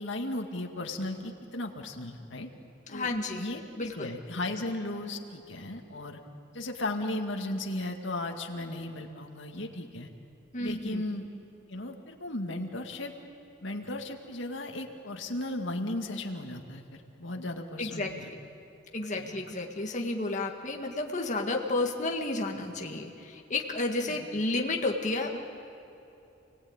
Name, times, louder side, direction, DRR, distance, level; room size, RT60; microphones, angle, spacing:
voice 1, 0.0-2.5 2.9-3.1 3.3-6.2 6.5-10.1 10.6-11.3 11.7-13.1 13.6-18.3 19.2-19.3 24.1-24.3, left 1 dB, 65° left, 3 dB, 2.2 m, -36 dB
voice 2, 2.9-3.5 3.8-4.1 10.5-11.0 17.8-18.4 18.9-25.4, left 2 dB, 40° left, 2 dB, 1.9 m, -31 dB
29.0 x 19.0 x 8.9 m, 2.9 s
head